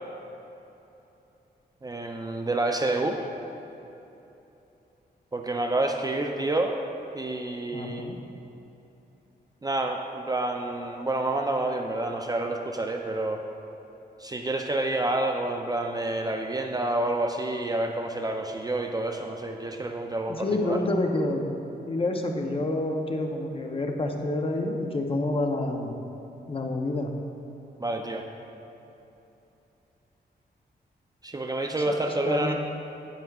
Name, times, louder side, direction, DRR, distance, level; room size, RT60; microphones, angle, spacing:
voice 1, 1.8-3.2 5.3-6.8 7.1-8.1 9.6-13.4 14.2-20.8 27.8-28.2 31.2-32.5, right 2 dB, 20° right, 3 dB, 0.4 m, -28 dB
voice 2, 7.7-8.2 20.3-21.5 21.9-26.0 26.5-27.1 31.9-32.5, left 2 dB, 35° left, 3 dB, 0.7 m, -28 dB
9.1 x 8.9 x 2.3 m, 3.0 s
wide cardioid pair, 115°, 17 cm